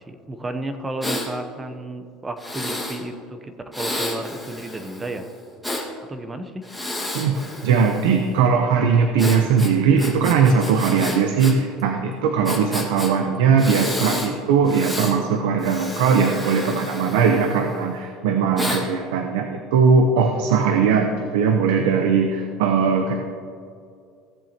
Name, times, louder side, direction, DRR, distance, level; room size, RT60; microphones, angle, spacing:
voice 1, 0.0-5.3 6.1-6.6, right 2 dB, 15° right, 8 dB, 0.8 m, -32 dB
Breathing, 1.0-1.3 2.4-3.0 3.7-5.8 6.6-8.2 9.2-11.5 11.8-11.9 12.4-13.1 13.6-14.3 14.6-15.1 15.6-17.8 18.6-18.8, left 1 dB, ahead, 1.8 m, -30 dB
voice 2, 7.1-23.2, right 5 dB, 85° right, 5 dB, 0.8 m, -19 dB
16.0 x 7.4 x 2.9 m, 2.3 s
supercardioid pair, 125°, 0 cm